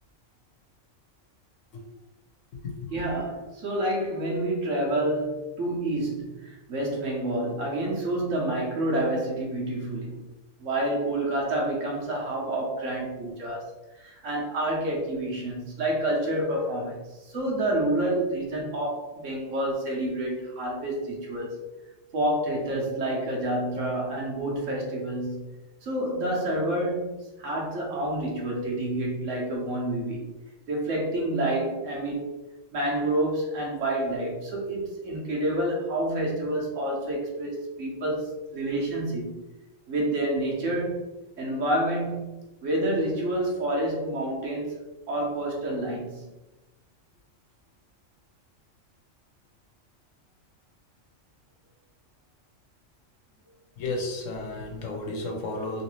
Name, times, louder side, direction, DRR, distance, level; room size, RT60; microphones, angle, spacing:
voice 1, 2.9-10.2 10.6-21.6 22.1-25.5 25.8-30.3 30.7-32.3 32.7-39.4 39.9-41.0 41.4-42.3 42.6-44.7 45.1-46.2, right 1 dB, 75° right, -2 dB, 1.3 m, -28 dB
voice 2, 53.8-55.8, left 2 dB, 75° left, 1 dB, 1.1 m, -32 dB
3.2 x 2.8 x 3.0 m, 1.0 s
omnidirectional pair, 1.3 m